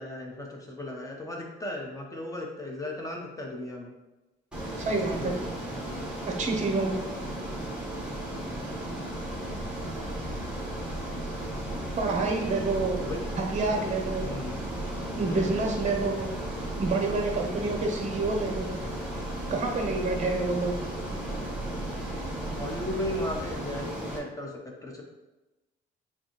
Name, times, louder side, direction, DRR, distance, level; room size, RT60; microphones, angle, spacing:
voice 1, 0.0-3.9 4.8-5.4 8.5-8.9 13.0-13.2 14.2-14.6 15.2-15.8 17.3-17.7 20.0-20.3 21.8-22.1 22.4-25.0, left 1 dB, 15° left, -1 dB, 1.1 m, -37 dB
Ocean, 4.5-24.2, right 1 dB, 5° right, 1.5 m, -35 dB
voice 2, 4.8-5.3 6.3-7.0 11.9-13.1 13.4-14.3 15.2-16.3 16.8-18.7 19.5-20.7, right 3 dB, 35° right, 2 dB, 0.8 m, -28 dB
sound 1, 9.1-23.5, right 1 dB, 35° left, 1.4 m, -41 dB
6.9 x 2.4 x 3.2 m, 1.1 s
cardioid pair, 90°, 20 cm